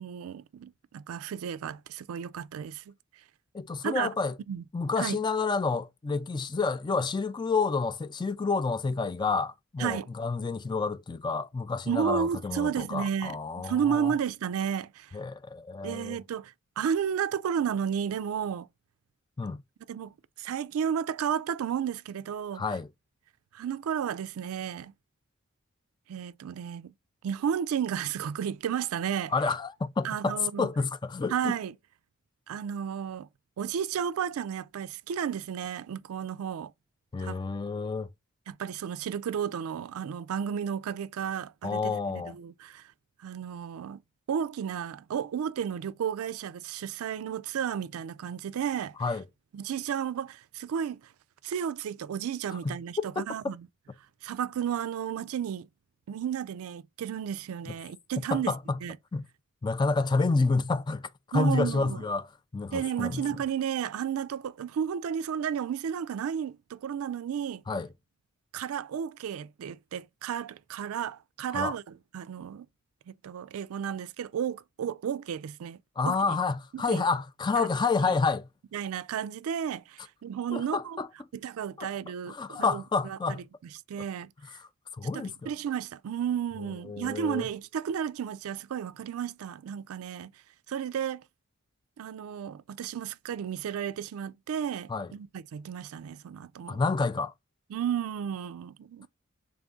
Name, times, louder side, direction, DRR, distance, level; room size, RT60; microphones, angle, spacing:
voice 1, 0.0-2.9 3.8-4.1 4.5-4.6 5.0-5.2 9.8-10.1 11.9-13.4 13.6-15.2 15.8-18.7 19.9-22.6 23.5-24.9 26.1-26.9 27.2-29.3 30.0-30.7 31.3-31.7 32.5-33.3 33.6-36.7 37.2-37.4 38.5-42.0 42.3-42.9 43.2-44.0 44.3-48.9 49.5-51.0 51.4-53.7 54.2-55.7 56.1-58.5 58.8-59.0 61.3-62.0 62.7-67.6 68.5-72.7 73.1-75.8 76.1-76.4 76.7-77.0 77.6-77.7 78.0-78.2 78.7-81.0 81.3-83.4 83.9-84.6 85.1-90.3 90.7-91.2 92.0-96.8 97.7-99.1, right 8 dB, 80° right, 0.3 m, -33 dB
voice 2, 3.5-4.3 4.7-14.1 15.1-16.2 19.4-19.6 22.5-22.9 29.3-31.5 37.1-38.1 41.6-42.4 49.0-49.2 52.6-52.8 57.7-57.8 58.3-58.8 59.1-59.2 59.6-62.3 62.5-63.2 67.7-67.9 71.5-71.8 76.0-78.5 80.5-81.1 81.8-81.9 82.3-83.4 84.9-85.5 86.8-87.5 94.9-95.1 96.7-97.3, left 4 dB, 20° left, 0.3 m, -29 dB
3.5 x 3.4 x 3.7 m
head